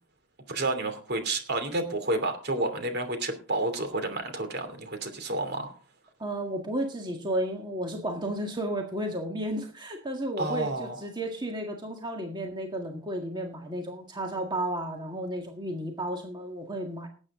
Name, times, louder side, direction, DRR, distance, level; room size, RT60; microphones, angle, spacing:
voice 1, 0.5-5.8 10.4-11.0, right 2 dB, 55° right, 7 dB, 2.9 m, -30 dB
voice 2, 6.2-17.1, right 1 dB, 25° right, 2 dB, 1.8 m, -33 dB
19.0 x 8.9 x 3.7 m, 0.38 s
head